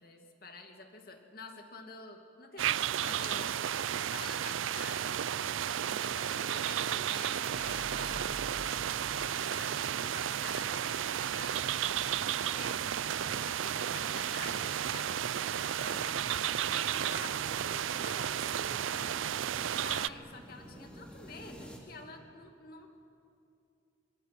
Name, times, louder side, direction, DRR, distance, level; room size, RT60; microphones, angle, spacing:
voice 1, 0.0-2.7 3.0-3.7 4.1-5.2 5.6-8.5 9.1-11.6 12.0-16.2 16.7-22.9, left 3 dB, 50° left, 3 dB, 2.4 m, -49 dB
sound 1, 2.6-20.1, right 9 dB, 90° right, 0.5 m, -33 dB
sound 2, 7.5-21.8, equal, 5° left, 3.0 m, -53 dB
26.5 x 26.5 x 6.1 m, 2.6 s
head